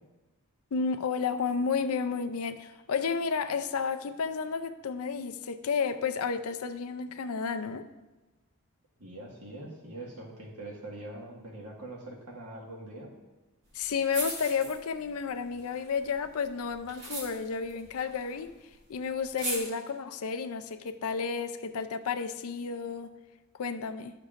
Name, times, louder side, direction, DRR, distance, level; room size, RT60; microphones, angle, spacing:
voice 1, 0.7-7.9 13.7-18.5 18.9-23.1 23.6-24.1, left 5 dB, 70° left, 0.5 m, -32 dB
voice 2, 9.0-13.1, right 1 dB, 85° right, 1.6 m, -43 dB
sound 1, 13.8-13.9 14.1-15.1 15.5-18.6 18.8-18.9 19.2-19.6, right 2 dB, 50° right, 2.2 m, -38 dB
12.0 x 6.6 x 2.5 m
head